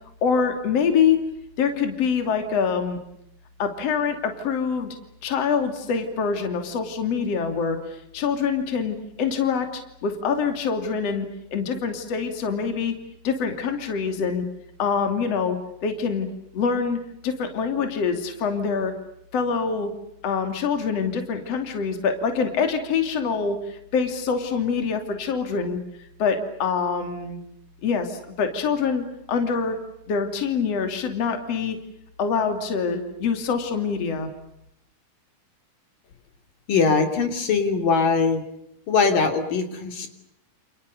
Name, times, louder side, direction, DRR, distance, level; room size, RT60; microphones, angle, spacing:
voice 1, 0.2-1.2 1.6-3.0 3.6-5.0 5.2-13.0 13.2-14.4 14.8-16.3 16.5-18.9 19.3-19.9 20.2-25.8 26.2-27.4 27.8-29.8 30.1-31.8 32.2-34.3, left 6 dB, 45° left, 6 dB, 3.7 m, -25 dB
voice 2, 36.7-38.5 38.9-40.1, left 5 dB, 70° left, 6 dB, 4.8 m, -21 dB
29.5 x 29.5 x 6.9 m, 0.80 s
omnidirectional pair, 4.1 m